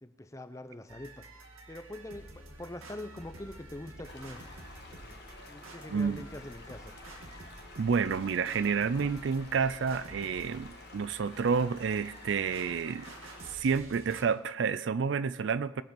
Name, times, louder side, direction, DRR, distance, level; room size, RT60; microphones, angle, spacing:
voice 1, 0.0-1.3 1.7-4.4 4.9-6.9, left 1 dB, 15° left, 0.6 m, -44 dB
sound 1, 0.9-14.2, right 2 dB, 85° right, 1.8 m, -49 dB
sound 2, 4.0-13.6, left 4 dB, 55° left, 1.3 m, -52 dB
voice 2, 5.9-6.2 7.8-13.1 13.5-15.8, right 5 dB, 60° right, 0.4 m, -29 dB
20.5 x 7.7 x 5.2 m
head